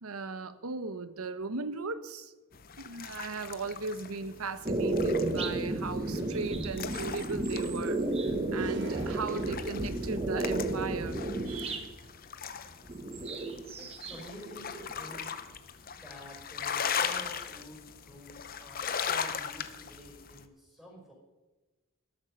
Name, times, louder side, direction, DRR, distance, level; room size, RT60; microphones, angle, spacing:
voice 1, 0.0-2.3 2.8-11.2 11.4-11.9, right 4 dB, 90° right, 13 dB, 1.0 m, -37 dB
sound 1, 2.5-20.4, left 7 dB, 45° left, 0.8 m, -39 dB
sound 2, 4.7-11.9 12.8-14.2 14.5-15.4, right 2 dB, 30° right, 1.2 m, -32 dB
sound 3, 8.5-10.5, right 2 dB, 55° right, 0.8 m, -47 dB
voice 2, 13.8-15.3 15.9-21.1, equal, ahead, -2 dB, 5.9 m, -49 dB
13.5 x 12.5 x 5.4 m, 1.2 s
head